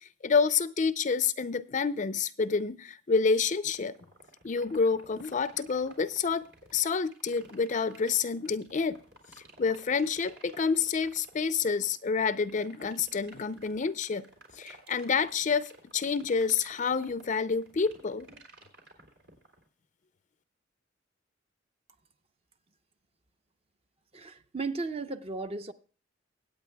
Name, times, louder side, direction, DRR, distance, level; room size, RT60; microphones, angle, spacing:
voice 1, 0.0-4.0 4.4-6.5 6.7-9.0 9.6-14.3 14.6-18.3, left 5 dB, 40° left, 0.5 m, -28 dB
sound 1, 3.7-19.6, right 2 dB, 70° right, 3.4 m, -53 dB
voice 2, 24.1-25.7, right 3 dB, 30° right, 0.6 m, -35 dB
24.0 x 8.8 x 2.2 m
head